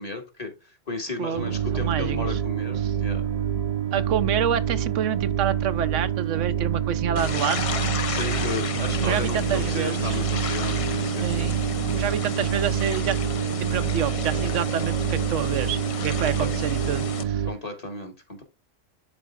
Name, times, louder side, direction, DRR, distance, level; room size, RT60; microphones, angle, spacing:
voice 1, 0.0-3.2 8.1-11.3 16.3-16.5 17.4-18.4, left 3 dB, 30° left, 1.5 m, -34 dB
voice 2, 1.2-2.3 2.8-2.9 3.9-7.7 9.0-10.2 11.2-11.6 11.9-13.2 13.5-17.5, right 9 dB, 80° right, 0.9 m, -28 dB
sound 1, 1.4-17.5, right 9 dB, 40° right, 0.6 m, -27 dB
sound 2, 7.2-17.2, left 6 dB, 45° left, 0.4 m, -32 dB
12.0 x 4.1 x 2.3 m
omnidirectional pair, 1.3 m